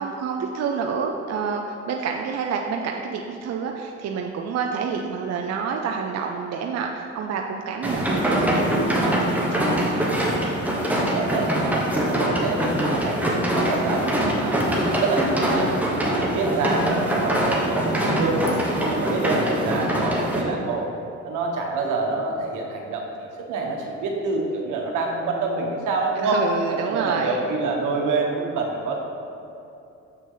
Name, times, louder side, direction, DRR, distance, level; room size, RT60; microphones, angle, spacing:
voice 1, 0.0-10.1 26.2-27.4, right 6 dB, 60° right, 2 dB, 0.6 m, -28 dB
sound 1, 7.8-20.4, right 1 dB, 5° right, 1.2 m, -23 dB
voice 2, 11.1-15.7 16.1-18.4 18.8-20.9 21.2-29.0, right 3 dB, 85° right, 0 dB, 1.2 m, -27 dB
7.0 x 6.0 x 3.9 m, 2.8 s
cardioid pair, 90°, 30 cm